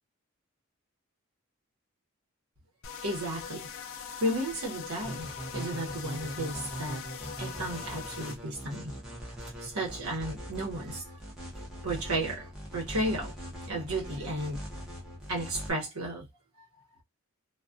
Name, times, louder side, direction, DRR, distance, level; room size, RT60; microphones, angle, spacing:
sound 1, 2.8-8.4, left 7 dB, 60° left, 0.4 m, -42 dB
voice 1, 3.0-3.7 4.2-7.0 7.4-8.9 9.6-11.0 11.8-13.3 13.7-14.6 15.3-16.2 16.5-16.6, right 1 dB, 80° right, 0.9 m, -33 dB
sound 2, 5.0-15.7, equal, 5° right, 0.6 m, -41 dB
2.2 x 2.2 x 2.4 m
head